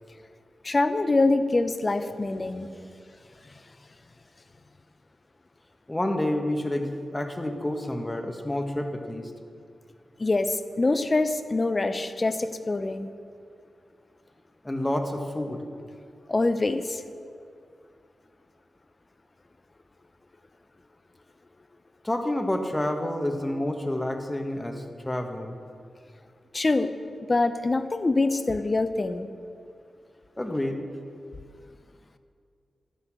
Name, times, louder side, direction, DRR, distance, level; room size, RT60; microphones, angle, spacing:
voice 1, 0.6-2.7 10.2-13.1 16.3-17.0 26.5-26.9 27.3-29.3, left 2 dB, 35° left, 10 dB, 0.8 m, -24 dB
voice 2, 2.6-2.9 5.9-9.3 14.6-15.6 22.0-25.6 30.4-30.8, left 1 dB, 15° left, 4 dB, 1.6 m, -29 dB
12.5 x 9.9 x 6.2 m, 2.3 s
cardioid pair, 55°, 0 cm